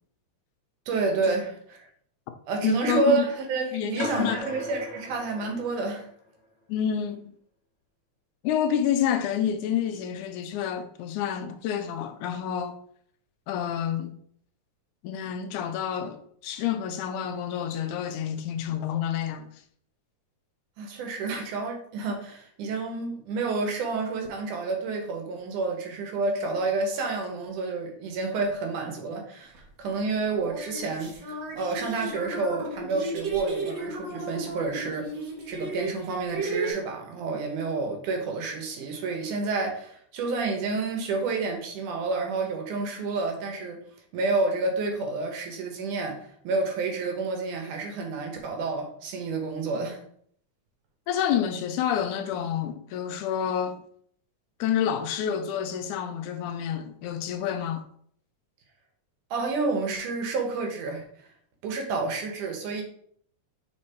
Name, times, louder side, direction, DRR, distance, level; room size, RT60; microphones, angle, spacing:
voice 1, 0.9-1.9 2.5-6.1 20.8-29.5 29.8-35.1 35.5-43.8 44.1-50.0 59.3-61.1 61.6-62.8, right 3 dB, 75° right, 2.6 m, -29 dB
voice 2, 2.6-3.3 3.7-4.4 6.7-7.3 8.4-12.8 13.5-14.2 15.0-19.5 51.1-53.8 54.6-57.8, left 9 dB, 80° left, 1.9 m, -28 dB
sound 1, 4.0-6.1, left 2 dB, 45° left, 1.6 m, -37 dB
sound 2, 29.6-29.7 30.3-36.7, right 2 dB, 55° right, 1.3 m, -34 dB
5.3 x 4.3 x 4.3 m
omnidirectional pair, 3.6 m